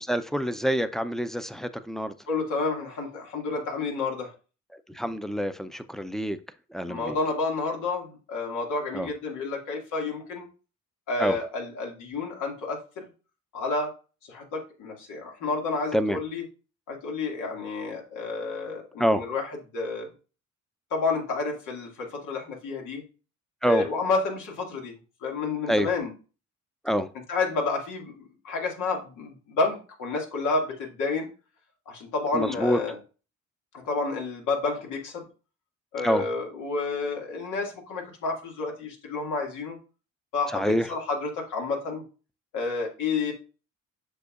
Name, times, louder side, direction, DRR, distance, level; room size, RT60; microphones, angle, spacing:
voice 1, 0.0-2.1 4.9-6.4 6.7-7.2 8.9-9.1 11.2-11.4 15.9-16.2 19.0-19.2 23.6-23.9 25.7-25.9 26.8-27.1 32.3-32.8 36.0-36.2 40.5-40.9, equal, ahead, 11 dB, 0.6 m, -26 dB
voice 2, 2.3-4.3 6.9-10.5 11.1-13.1 13.5-14.0 14.3-16.4 16.9-19.4 19.7-20.1 20.9-23.0 23.6-24.9 25.2-26.1 27.3-31.3 31.9-32.9 33.7-35.3 35.9-39.8 40.3-42.0 42.5-43.3, left 3 dB, 90° left, 0 dB, 2.2 m, -30 dB
8.1 x 6.0 x 2.4 m, 0.34 s
cardioid pair, 90°, 30 cm